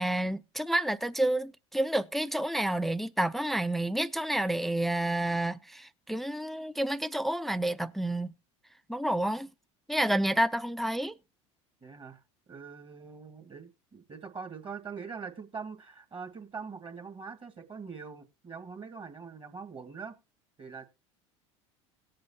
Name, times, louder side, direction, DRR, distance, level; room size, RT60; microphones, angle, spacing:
voice 1, 0.0-8.3 8.9-9.5 9.9-11.2, right 1 dB, ahead, 0.5 m, -29 dB
voice 2, 11.8-12.2 12.5-20.1 20.6-20.9, right 5 dB, 30° right, 2.0 m, -43 dB
18.0 x 7.6 x 2.8 m
hypercardioid pair, 85°, 16 cm